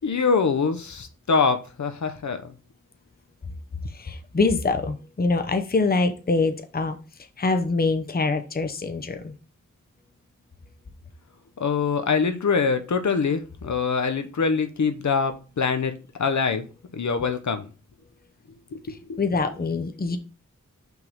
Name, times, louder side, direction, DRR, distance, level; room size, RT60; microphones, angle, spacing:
voice 1, 0.0-2.5 11.6-15.9 16.2-16.6 16.9-17.7 18.7-18.8 19.1-19.2, left 5 dB, 65° left, 8 dB, 1.0 m, -24 dB
voice 2, 4.0-7.0 7.4-9.3 19.2-20.2, left 3 dB, 30° left, 7 dB, 0.8 m, -24 dB
5.9 x 3.8 x 5.4 m, 0.33 s
wide cardioid pair, 70°, 32 cm